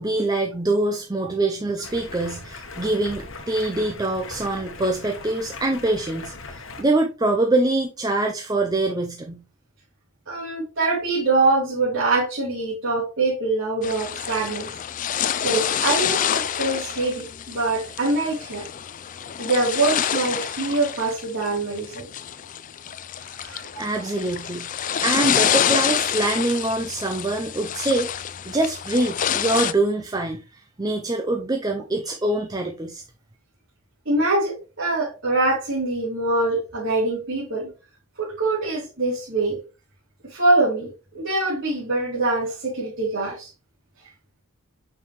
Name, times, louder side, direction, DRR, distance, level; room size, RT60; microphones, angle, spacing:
voice 1, 0.0-9.4 23.8-24.7 25.0-33.0, right 2 dB, 15° right, 0.6 m, -24 dB
Stream, 1.8-6.8, left 3 dB, 60° left, 1.1 m, -39 dB
voice 2, 10.3-14.7 15.4-18.7 19.4-22.1 23.4-23.8 34.1-37.7 38.2-39.6 40.2-40.9 41.1-43.5, right 2 dB, 55° right, 2.3 m, -24 dB
sound 1, 13.8-29.7, left 9 dB, 35° left, 0.3 m, -27 dB
6.8 x 5.4 x 3.1 m
head